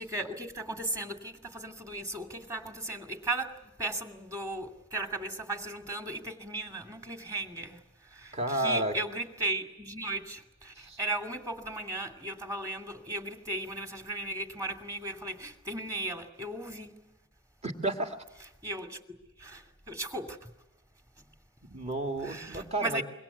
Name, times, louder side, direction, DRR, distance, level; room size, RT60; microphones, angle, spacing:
voice 1, 0.0-16.9 18.6-19.0 19.4-20.5 22.2-23.0, right 2 dB, 15° right, 2.5 m, -36 dB
voice 2, 8.3-8.9 10.8-11.0 17.6-18.2 21.6-23.0, right 1 dB, 35° right, 2.3 m, -31 dB
25.5 x 23.5 x 8.2 m
head